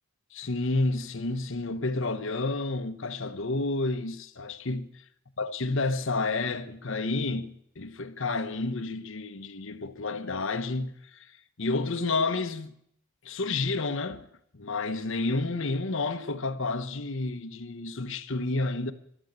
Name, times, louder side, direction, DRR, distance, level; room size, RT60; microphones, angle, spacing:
voice 1, 0.3-4.9 5.4-11.3 11.6-12.8 13.2-14.3 14.5-18.9, left 3 dB, 55° left, 1.0 m, -30 dB
13.0 x 12.0 x 8.1 m
head